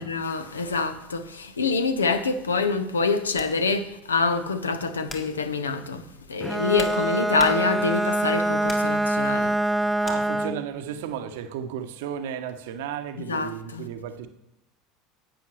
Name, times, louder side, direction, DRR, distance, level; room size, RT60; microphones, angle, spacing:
voice 1, 0.0-6.0 6.3-9.5 13.2-13.9, left 4 dB, 85° left, 0.6 m, -26 dB
sound 1, 3.3-3.6 4.2-4.5 5.1-5.4 6.3-8.0 8.7-9.0 10.0-10.2, left 3 dB, 30° left, 1.7 m, -41 dB
Bowed string instrument, 6.4-10.7, right 1 dB, 5° right, 0.3 m, -25 dB
voice 2, 10.0-14.3, right 9 dB, 65° right, 0.8 m, -34 dB
11.0 x 8.6 x 3.2 m
figure-of-eight pair, 70°, 0 cm